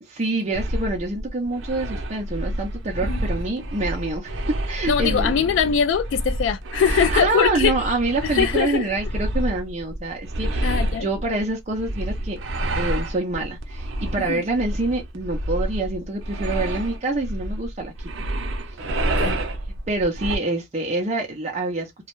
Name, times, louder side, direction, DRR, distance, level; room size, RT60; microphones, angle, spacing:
voice 1, 0.1-4.4 4.7-5.4 7.1-12.4 12.8-18.2 18.7-18.9 19.9-22.1, right 2 dB, 35° right, 0.5 m, -26 dB
sound 1, 0.5-20.4, right 1 dB, 90° right, 0.5 m, -28 dB
voice 2, 4.9-7.7 8.2-8.9 10.6-11.1 14.2-14.4 19.2-19.4, left 7 dB, 80° left, 0.3 m, -22 dB
2.2 x 2.0 x 2.9 m
head